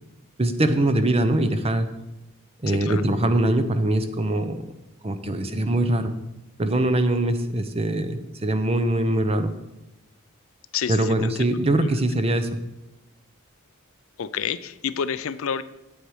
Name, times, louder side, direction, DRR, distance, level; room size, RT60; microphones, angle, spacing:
voice 1, 0.4-1.9 2.6-4.6 5.0-6.1 6.6-9.5 10.9-12.5, right 1 dB, 30° right, 10 dB, 0.7 m, -22 dB
voice 2, 2.7-3.0 10.7-11.3 14.2-15.6, left 7 dB, 65° left, 14 dB, 0.4 m, -29 dB
8.8 x 8.1 x 4.8 m, 0.96 s
head